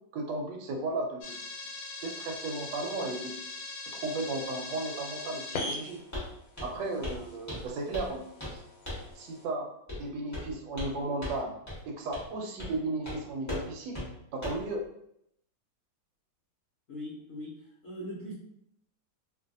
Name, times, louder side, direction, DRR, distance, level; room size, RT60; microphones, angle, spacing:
voice 1, 0.1-1.4 2.0-3.3 3.9-6.0 6.6-8.6 9.1-9.7 10.0-11.5 11.9-14.0 14.3-14.8, right 2 dB, 75° right, 1 dB, 1.2 m, -35 dB
sound 1, 1.2-9.4, left 3 dB, 85° left, 1.3 m, -41 dB
Walk footsteps, 6.1-6.3 6.6-6.8 7.0-7.2 7.5-8.1 8.4-8.6 8.9-9.1 9.9-10.0 10.3-10.9 11.2-11.4 11.7-11.8 12.1-12.3 12.6-12.8 13.0-13.2 13.5-13.7 13.9-14.1 14.4-14.7, left 1 dB, 15° left, 0.6 m, -37 dB
voice 2, 16.9-18.3, equal, 65° left, -7 dB, 0.8 m, -41 dB
2.7 x 2.5 x 2.5 m, 0.74 s
omnidirectional pair, 2.0 m